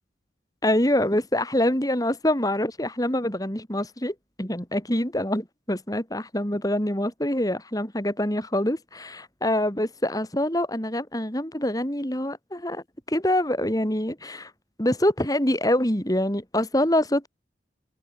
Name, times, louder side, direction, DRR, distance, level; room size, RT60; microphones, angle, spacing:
voice 1, 0.6-14.5 14.8-17.3, left 1 dB, 20° left, 4.2 m, -25 dB
head